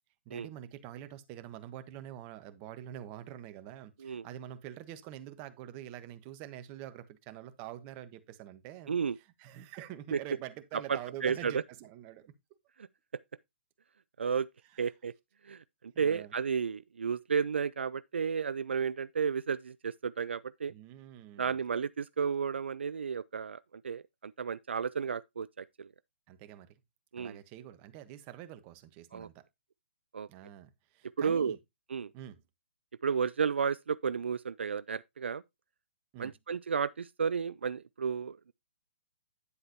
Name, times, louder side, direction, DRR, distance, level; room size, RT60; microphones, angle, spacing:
voice 1, 0.2-12.3 14.7-14.9 15.9-16.3 20.7-21.6 26.3-26.8 27.2-29.5 30.3-31.6 32.1-32.4 36.1-36.3, right 12 dB, 30° right, 1.1 m, -46 dB
voice 2, 10.9-11.6 14.2-14.5 14.8-15.1 15.4-15.6 16.0-20.7 21.4-25.9 27.1-27.4 29.1-29.3 30.1-30.3 31.2-31.6 31.9-32.1 33.0-35.4 36.2-38.5, right 6 dB, 75° right, 0.4 m, -32 dB
9.8 x 7.8 x 2.8 m
figure-of-eight pair, 135°, 6 cm